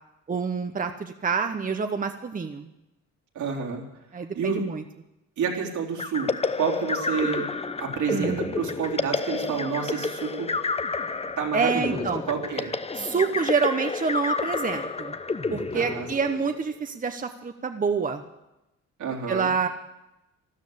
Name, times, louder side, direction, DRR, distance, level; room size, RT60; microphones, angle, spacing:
voice 1, 0.3-2.7 4.1-4.8 8.1-8.5 11.5-12.2 12.9-15.2 15.5-18.2 19.3-19.7, right 5 dB, 25° right, 6 dB, 1.0 m, -27 dB
voice 2, 3.4-3.8 4.4-4.6 5.4-6.3 6.6-7.5 7.8-10.6 11.4-12.7 15.7-16.1 19.0-19.5, right 6 dB, 70° right, -1 dB, 3.6 m, -29 dB
sound 1, 6.0-16.6, left 4 dB, 20° left, 0.8 m, -30 dB
13.5 x 12.5 x 8.6 m, 0.93 s
cardioid pair, 90°, 30 cm